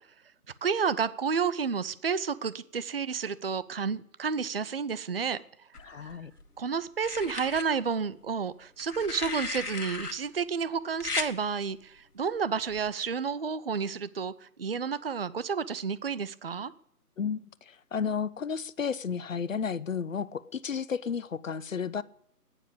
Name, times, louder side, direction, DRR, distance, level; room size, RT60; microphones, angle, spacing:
voice 1, 0.6-5.4 5.9-6.2 6.6-16.7, right 6 dB, 40° right, 0.6 m, -31 dB
sound 1, 5.7-6.4 7.0-7.7 8.8-10.1 11.0-11.3 12.7-12.9, left 4 dB, 75° left, 2.0 m, -35 dB
voice 2, 5.8-6.3 17.2-22.0, left 6 dB, 55° left, 0.8 m, -33 dB
15.5 x 9.9 x 8.6 m
figure-of-eight pair, 150°, 47 cm